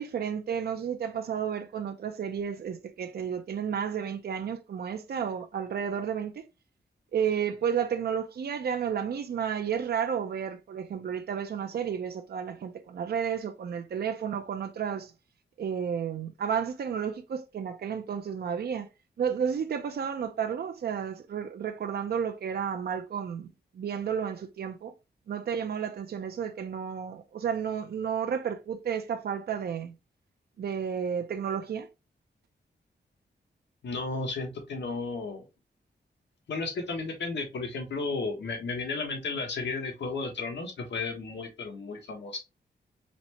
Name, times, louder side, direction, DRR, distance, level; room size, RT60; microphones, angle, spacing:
voice 1, 0.0-6.4 7.1-15.1 15.6-18.9 19.2-23.5 23.7-24.9 25.3-29.9 30.6-31.9, right 7 dB, 60° right, 0.5 m, -32 dB
voice 2, 33.8-35.4 36.5-42.4, left 3 dB, 80° left, 1.3 m, -33 dB
4.2 x 3.2 x 2.9 m
wide cardioid pair, 145°, 18 cm